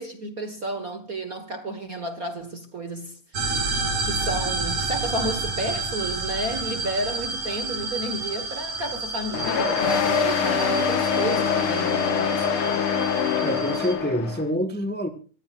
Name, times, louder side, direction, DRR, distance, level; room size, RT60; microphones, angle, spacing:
voice 1, 0.0-3.7 4.0-12.8, right 1 dB, 40° right, 1.3 m, -32 dB
sound 1, 3.3-13.9, right 3 dB, 65° right, 5.6 m, -30 dB
sound 2, 9.3-14.4, left 7 dB, 55° left, 1.9 m, -24 dB
voice 2, 13.4-15.1, equal, 10° left, 0.6 m, -26 dB
25.5 x 16.0 x 2.5 m
omnidirectional pair, 3.6 m